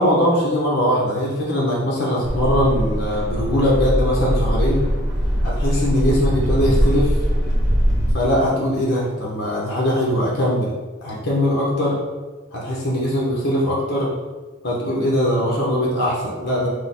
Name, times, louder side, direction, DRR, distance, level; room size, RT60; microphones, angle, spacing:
voice 1, 0.0-4.9 5.4-7.1 8.1-10.7 11.0-12.0 12.5-14.1 14.6-16.7, equal, 65° left, -4 dB, 0.8 m, -21 dB
sound 1, 2.2-8.1, equal, 65° right, 1.0 m, -21 dB
4.7 x 2.1 x 4.1 m, 1.3 s
head